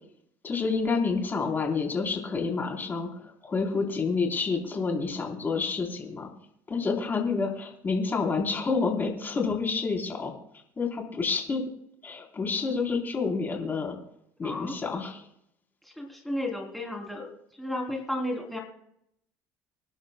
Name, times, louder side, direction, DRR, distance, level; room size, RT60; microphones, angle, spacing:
voice 1, 0.4-6.3 6.7-10.3 10.8-11.6 12.0-14.0 14.4-15.3, left 4 dB, 30° left, 1 dB, 3.7 m, -29 dB
voice 2, 14.4-14.8 15.8-17.3 17.6-18.6, left 1 dB, ahead, -1 dB, 3.2 m, -33 dB
25.5 x 11.0 x 2.3 m, 0.74 s
supercardioid pair, 95°, 7 cm